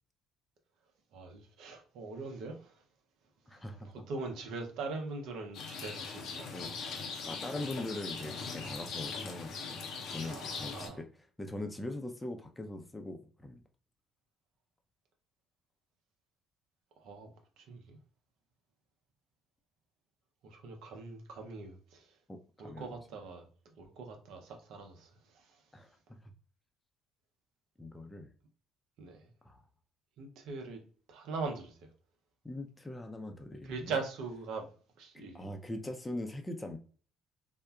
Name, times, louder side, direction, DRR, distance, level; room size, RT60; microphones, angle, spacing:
voice 1, 1.1-2.8 3.9-6.5 10.3-11.0 17.0-17.3 17.6-18.0 20.4-22.1 22.6-25.6 29.0-29.3 30.2-30.8 31.1-31.8 33.6-34.7 35.0-35.5, right 4 dB, 65° right, 0.7 m, -41 dB
voice 2, 3.5-3.9 6.5-6.7 7.2-9.8 10.1-11.1 11.4-13.6 22.3-23.0 25.7-26.0 27.8-28.3 29.4-29.6 32.4-34.0 35.1-36.8, left 1 dB, 15° left, 0.5 m, -41 dB
Rain, 5.5-10.9, left 5 dB, 60° left, 0.5 m, -41 dB
3.5 x 2.1 x 2.3 m
hypercardioid pair, 50°, 0 cm